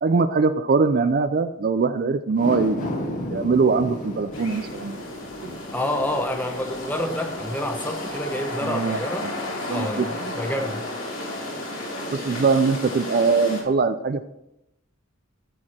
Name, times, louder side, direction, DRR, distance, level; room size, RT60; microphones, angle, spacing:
voice 1, 0.0-3.0 3.3-5.0 5.4-5.6 8.6-9.3 9.7-10.3 12.1-14.2, right 4 dB, 45° right, 0.4 m, -22 dB
sound 1, 2.3-8.8 9.2-9.3, left 1 dB, 40° left, 1.3 m, -35 dB
sound 2, 4.3-13.6, left 1 dB, 70° left, 3.3 m, -33 dB
voice 2, 5.7-9.3 9.7-10.8, left 1 dB, 10° left, 0.8 m, -28 dB
13.5 x 4.7 x 4.3 m
head